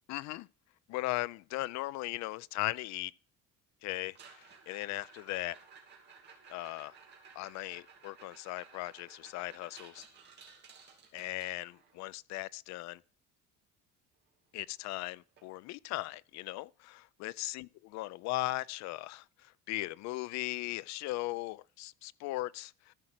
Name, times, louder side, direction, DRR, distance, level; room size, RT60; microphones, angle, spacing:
voice 1, 0.1-0.5 0.9-3.1 3.8-5.6 6.5-6.9 7.4-10.0 11.1-13.0 14.5-22.9, left 19 dB, 65° left, 0.4 m, -38 dB
sound 1, 4.0-12.0 14.3-14.4 14.6-14.9 15.4-15.5 16.0-16.1 18.0-18.1, right 5 dB, 35° right, 2.6 m, -56 dB
13.5 x 5.0 x 5.9 m
cardioid pair, 180°, 30 cm